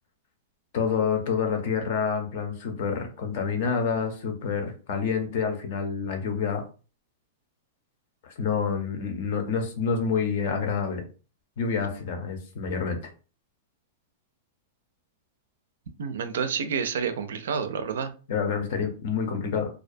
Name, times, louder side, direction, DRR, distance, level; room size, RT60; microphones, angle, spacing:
voice 1, 0.7-6.6 8.2-11.0 11.6-13.0 18.3-19.7, left 6 dB, 40° left, 0.6 m, -28 dB
voice 2, 16.0-18.1, right 6 dB, 85° right, 0.4 m, -29 dB
2.3 x 2.1 x 2.6 m
supercardioid pair, 180°, 0 cm